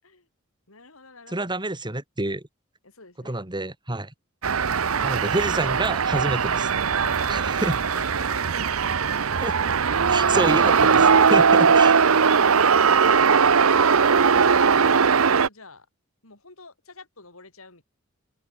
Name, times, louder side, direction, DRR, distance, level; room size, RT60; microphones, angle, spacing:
voice 1, 0.7-1.5 2.8-3.4 4.9-5.4 7.0-8.4 9.2-9.6 12.2-12.6 12.9-15.9 16.2-17.8, left 3 dB, 80° left, 6.1 m, -47 dB
voice 2, 1.3-2.4 3.2-4.1 5.0-6.7 7.3-7.8 9.4-9.5 10.1-12.0, right 2 dB, 20° right, 3.3 m, -28 dB
sound 1, 4.4-15.5, right 6 dB, 85° right, 0.9 m, -19 dB
open air
head